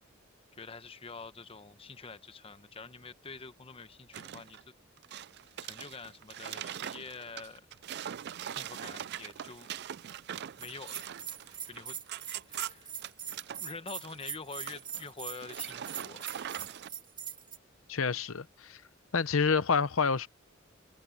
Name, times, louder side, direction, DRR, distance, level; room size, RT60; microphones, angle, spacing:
voice 1, 0.5-4.6 5.6-7.6 8.5-9.7 10.6-11.1 11.4-12.0 12.5-12.9 13.6-16.3, left 4 dB, 25° left, 1.0 m, -46 dB
sound 1, 4.1-4.6 5.0-13.6 14.0-14.3 14.6-15.1 15.4-16.9, right 10 dB, 55° right, 0.4 m, -42 dB
Bell, 10.6-17.6, right 8 dB, 20° right, 2.4 m, -41 dB
voice 2, 17.9-18.8 19.1-20.3, left 5 dB, 80° left, 0.9 m, -28 dB
head